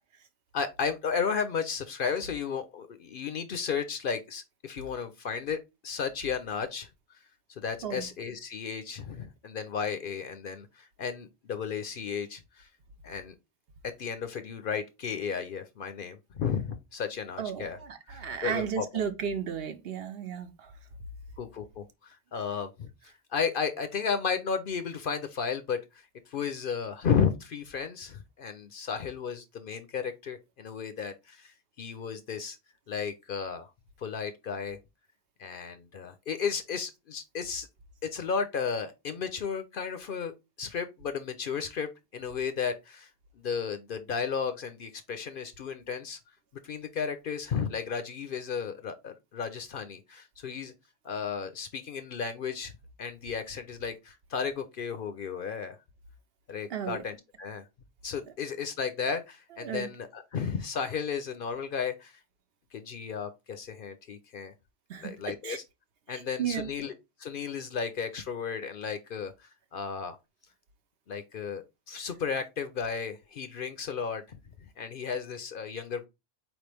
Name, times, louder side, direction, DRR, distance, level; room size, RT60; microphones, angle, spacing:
voice 1, 0.5-5.6 5.8-6.9 7.5-12.7 13.0-13.3 13.8-17.8 18.1-18.8 21.4-32.6 32.9-33.7 34.0-34.8 35.4-37.7 38.0-40.3 40.6-43.1 43.4-46.2 46.6-50.7 51.0-52.7 53.0-55.8 56.5-57.6 58.0-62.2 62.7-64.5 65.0-65.6 66.1-66.9 67.2-70.2 71.1-74.4 74.8-76.1, left 6 dB, 60° left, 0.7 m, -34 dB
voice 2, 17.4-20.7 56.7-57.0 59.6-59.9 64.9-65.6 66.1-66.7, right 8 dB, 60° right, 0.8 m, -34 dB
4.6 x 3.1 x 3.3 m
omnidirectional pair, 1.2 m